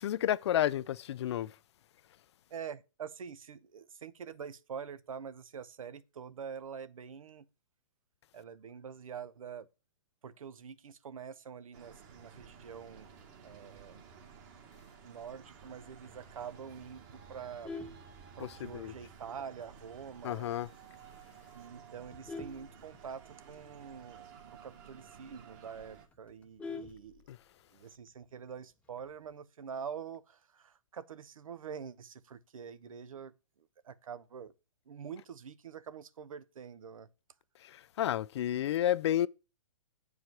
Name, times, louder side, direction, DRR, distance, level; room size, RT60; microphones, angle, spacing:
voice 1, 0.0-1.5 18.4-18.9 20.2-20.7 27.3-27.4 37.7-39.3, left 11 dB, 55° left, 0.4 m, -31 dB
voice 2, 2.5-7.5 8.3-9.7 10.2-14.0 14.8-17.7 18.4-20.5 21.5-27.3 27.7-33.3 33.8-34.5 34.9-37.1, right 7 dB, 85° right, 0.8 m, -46 dB
sound 1, 11.7-26.1, right 6 dB, 40° right, 1.7 m, -54 dB
Vehicle horn car horn honking, 17.4-18.8 19.3-19.6 19.9-20.0 20.4-20.5 20.8-21.1 21.7-23.5 23.9-24.0 24.3-24.4 24.8-24.9 25.2-25.3 25.6-27.6 28.8-29.3, left 3 dB, 10° left, 0.6 m, -46 dB
8.0 x 4.8 x 5.9 m
hypercardioid pair, 150°, 17 cm